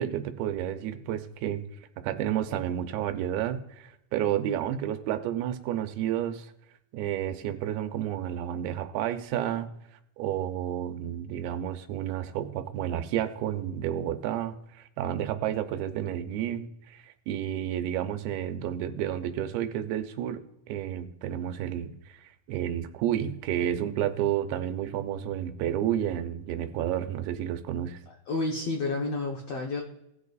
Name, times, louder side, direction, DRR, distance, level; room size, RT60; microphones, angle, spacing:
voice 1, 0.0-1.6 2.0-6.5 6.9-9.7 10.2-20.4 20.7-28.0, right 11 dB, 85° right, 9 dB, 2.6 m, -31 dB
voice 2, 28.3-29.8, left 3 dB, 80° left, 0 dB, 1.4 m, -30 dB
17.5 x 6.7 x 2.4 m, 0.82 s
omnidirectional pair, 4.3 m